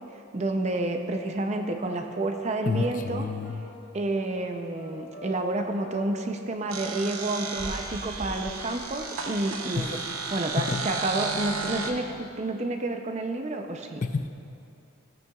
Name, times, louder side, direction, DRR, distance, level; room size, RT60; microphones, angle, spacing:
voice 1, 0.3-3.3 3.9-10.0 10.3-14.0, right 2 dB, 30° right, 5 dB, 0.5 m, -30 dB
sound 1, 1.5-9.8, equal, 65° left, 2.2 m, -49 dB
voice 2, 2.7-3.6 9.8-10.1 10.6-10.8 14.0-14.3, left 4 dB, 35° left, 8 dB, 0.3 m, -29 dB
sound 2, 6.7-11.9, right 4 dB, 80° right, 0.8 m, -33 dB
15.0 x 8.8 x 2.4 m, 2.6 s
head